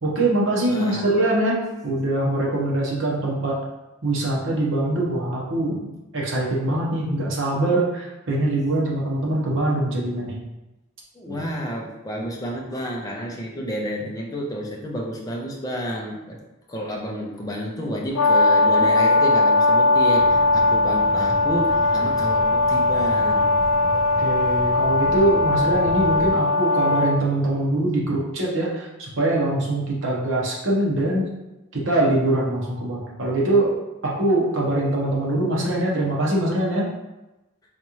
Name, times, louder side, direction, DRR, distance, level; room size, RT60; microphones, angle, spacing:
voice 1, 0.0-3.5 4.0-5.8 6.1-10.4 11.3-11.5 24.2-31.2 31.7-33.8 34.0-36.8, right 1 dB, 65° right, -4 dB, 0.9 m, -23 dB
voice 2, 0.7-1.1 11.1-16.4 16.7-23.5, equal, 15° left, -2 dB, 0.5 m, -30 dB
Brass instrument, 18.1-27.2, left 2 dB, 70° left, 0.3 m, -19 dB
sound 1, 20.2-26.3, equal, ahead, 1.0 m, -36 dB
4.1 x 2.5 x 3.0 m, 1.0 s
head